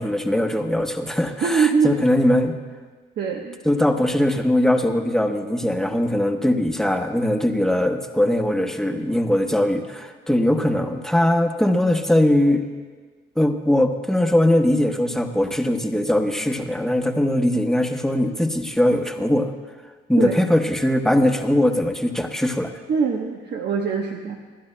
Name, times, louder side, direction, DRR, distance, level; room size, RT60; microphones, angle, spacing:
voice 1, 0.0-2.5 3.7-12.6 13.4-19.5 20.1-22.7, left 1 dB, ahead, 4 dB, 1.0 m, -20 dB
voice 2, 1.4-1.9 3.2-3.6 20.2-20.4 22.9-24.4, right 6 dB, 60° right, 1 dB, 1.0 m, -22 dB
25.5 x 11.5 x 2.2 m, 1.5 s
cardioid pair, 90°, 20 cm